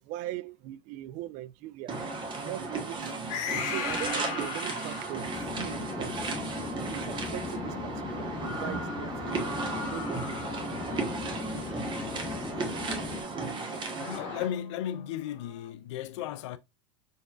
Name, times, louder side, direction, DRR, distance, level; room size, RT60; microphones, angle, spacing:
voice 1, 0.0-2.0 2.4-3.4 3.6-6.3 6.9-10.2, right 15 dB, 55° right, 0.4 m, -40 dB
sound 1, 1.9-14.5, right 3 dB, 30° right, 1.2 m, -35 dB
sound 2, 3.3-5.4 7.6-8.6 9.4-12.5 14.0-15.7, left 8 dB, 60° left, 0.9 m, -40 dB
Conversation / Chatter / Fixed-wing aircraft airplane, 5.2-13.2, left 5 dB, 25° left, 0.6 m, -38 dB
voice 2, 14.0-16.6, left 11 dB, 75° left, 0.4 m, -35 dB
4.1 x 3.4 x 2.4 m
hypercardioid pair, 95°, 15 cm